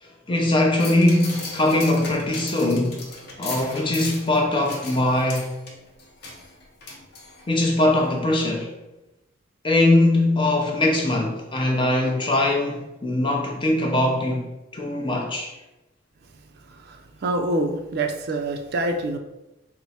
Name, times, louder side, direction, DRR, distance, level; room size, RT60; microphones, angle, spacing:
voice 1, 0.0-3.0 3.4-5.5 7.5-8.7 9.6-15.5, left 1 dB, 25° left, 0.5 m, -21 dB
sound 1, 0.8-7.7 8.1-8.2, left 2 dB, 55° left, 0.8 m, -37 dB
voice 2, 16.6-19.2, right 2 dB, 50° right, 0.4 m, -26 dB
4.4 x 2.0 x 4.1 m
head